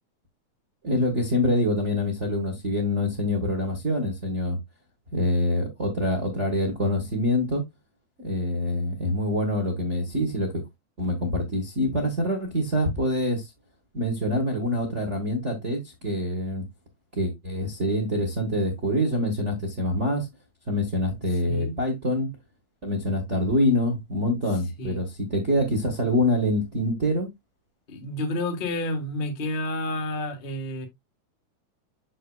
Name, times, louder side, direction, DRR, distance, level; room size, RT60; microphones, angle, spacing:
voice 1, 0.8-4.6 5.1-7.6 8.2-10.6 11.0-13.5 13.9-16.6 17.2-20.3 20.7-22.3 22.8-27.3, left 1 dB, 45° right, 0.9 m, -25 dB
voice 2, 21.4-21.8 24.8-25.0 27.9-30.9, left 1 dB, 80° left, 0.4 m, -30 dB
7.3 x 6.5 x 2.2 m
omnidirectional pair, 3.6 m